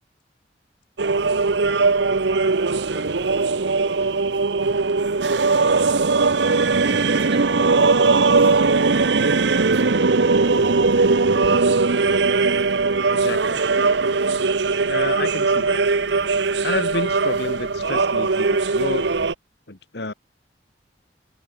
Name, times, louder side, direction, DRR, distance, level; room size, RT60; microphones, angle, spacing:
sound 1, 1.0-19.3, right 4 dB, 85° right, 0.9 m, -19 dB
voice 1, 2.1-4.7 7.1-8.6, right 1 dB, 30° right, 3.4 m, -41 dB
voice 2, 13.1-13.6 14.9-15.8 16.6-19.2 19.7-20.1, left 2 dB, 70° left, 1.9 m, -30 dB
head